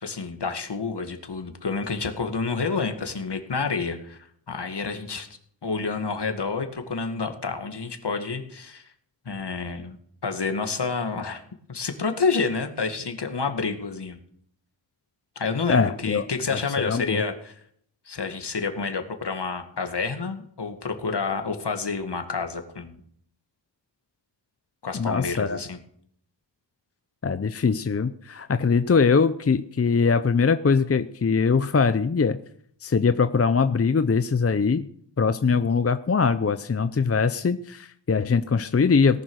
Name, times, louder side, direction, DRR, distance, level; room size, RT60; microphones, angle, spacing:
voice 1, 0.0-5.3 5.6-8.8 9.3-10.0 10.2-11.4 11.7-14.2 15.4-17.5 18.1-23.0 24.8-25.8, left 4 dB, 65° left, 6 dB, 2.2 m, -29 dB
voice 2, 15.7-16.2 16.5-16.6 16.8-17.2 24.9-25.6 27.2-32.4 32.8-34.9 35.2-39.2, left 5 dB, 30° left, 11 dB, 0.6 m, -22 dB
18.5 x 10.5 x 6.4 m, 0.64 s
wide cardioid pair, 105°, 45 cm